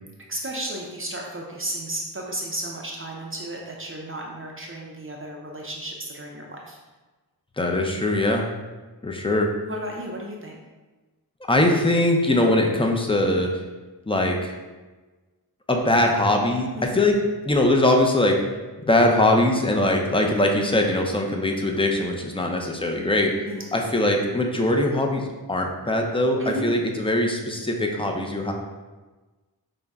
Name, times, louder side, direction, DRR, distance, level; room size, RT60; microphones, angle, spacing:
voice 1, 0.3-6.8 9.6-10.6 16.8-17.0 23.5-23.7 26.4-26.7, right 1 dB, 35° right, -1 dB, 0.6 m, -33 dB
voice 2, 7.6-8.5 9.0-9.5 11.5-13.5 14.1-14.5 15.7-17.1 17.5-18.4 18.8-28.5, left 1 dB, 15° left, 2 dB, 0.6 m, -21 dB
5.3 x 2.2 x 3.5 m, 1.2 s
wide cardioid pair, 75°, 39 cm